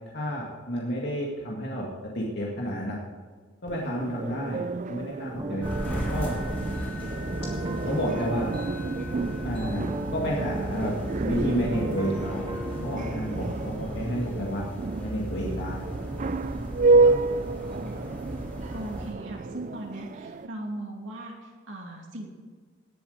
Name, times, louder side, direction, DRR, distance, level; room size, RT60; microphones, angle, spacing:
voice 1, 0.1-1.9 2.1-3.0 3.6-4.6 4.9-5.7 5.9-6.3 7.9-8.5 9.4-9.8 10.1-10.9 11.2-12.5 12.8-14.6 15.0-15.8 17.0-17.1, equal, 55° left, -3 dB, 2.0 m, -30 dB
sound 1, 3.7-20.5, right 3 dB, 40° right, 0.4 m, -30 dB
sound 2, 5.4-13.9, right 2 dB, 20° right, 0.8 m, -36 dB
sound 3, 5.6-19.1, equal, 10° left, 3.8 m, -36 dB
voice 2, 16.9-18.0 18.7-22.3, right 1 dB, 65° right, -1 dB, 2.6 m, -39 dB
18.5 x 8.0 x 5.1 m, 1.5 s
head